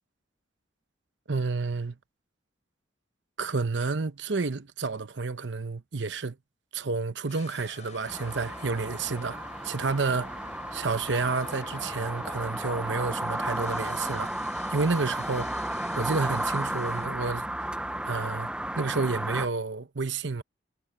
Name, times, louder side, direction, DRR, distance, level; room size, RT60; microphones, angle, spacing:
voice 1, 1.3-2.0 3.4-6.4 6.7-10.3 10.7-14.3 14.7-15.5 16.0-17.5 18.1-18.5 18.8-20.4, right 4 dB, 70° right, 0.9 m, -30 dB
sound 1, 7.3-17.1, left 5 dB, 40° left, 5.6 m, -48 dB
sound 2, 8.1-19.5, right 1 dB, 5° right, 0.7 m, -33 dB
head